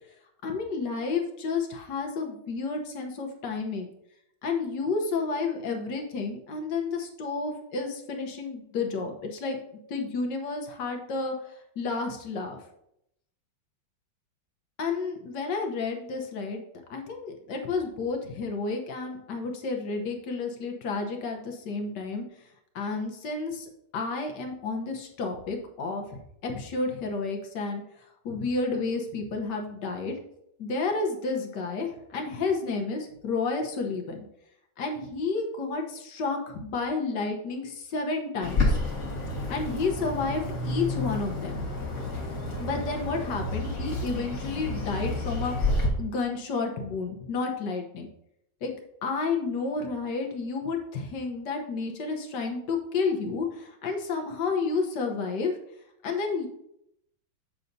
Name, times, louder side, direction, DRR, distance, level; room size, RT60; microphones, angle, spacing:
voice 1, 0.4-3.9 4.4-9.6 9.9-11.3 11.8-12.6 14.8-16.6 16.9-22.3 22.7-27.8 28.2-30.1 30.6-34.2 34.8-38.8 39.5-41.8 42.6-48.1 48.6-48.7 49.0-55.6 56.0-56.5, left 4 dB, 60° left, 2 dB, 1.4 m, -31 dB
Bird, 38.4-45.9, left 2 dB, 40° left, 1.6 m, -30 dB
7.2 x 6.5 x 2.6 m, 0.77 s
omnidirectional pair, 2.3 m